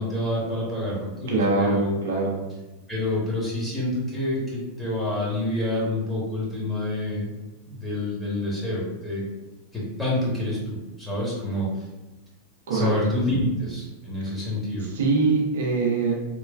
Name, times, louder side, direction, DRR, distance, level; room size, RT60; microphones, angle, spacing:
voice 1, 0.0-1.9 2.9-7.3 7.7-9.2 9.7-11.7 12.7-14.9, left 1 dB, 5° left, -7 dB, 1.1 m, -27 dB
voice 2, 1.3-2.3 12.7-12.9 14.9-16.1, right 3 dB, 60° right, -1 dB, 0.4 m, -23 dB
3.0 x 2.2 x 2.3 m, 1.1 s
figure-of-eight pair, 90°, 0 cm